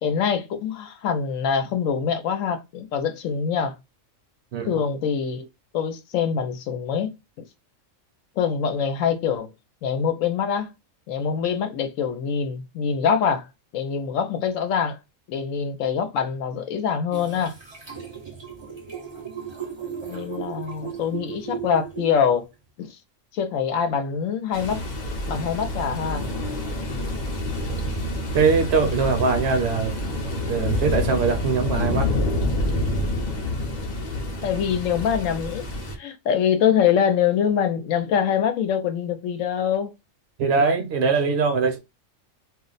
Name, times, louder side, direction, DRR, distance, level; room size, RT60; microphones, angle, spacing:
voice 1, 0.0-3.8 4.7-5.5 5.7-7.4 8.4-9.5 9.8-10.7 11.1-13.5 13.7-15.0 15.3-17.6 20.0-22.5 22.8-23.0 23.3-24.8 25.3-26.2 34.4-35.7 36.0-39.9, left 7 dB, 80° left, 1.0 m, -24 dB
sound 1, 17.1-22.5, right 6 dB, 30° right, 0.5 m, -36 dB
sound 2, 24.5-36.0, left 1 dB, 45° left, 0.6 m, -27 dB
voice 2, 28.3-30.0 30.5-32.1 40.4-41.8, right 5 dB, 60° right, 0.8 m, -22 dB
2.4 x 2.0 x 3.8 m
omnidirectional pair, 1.3 m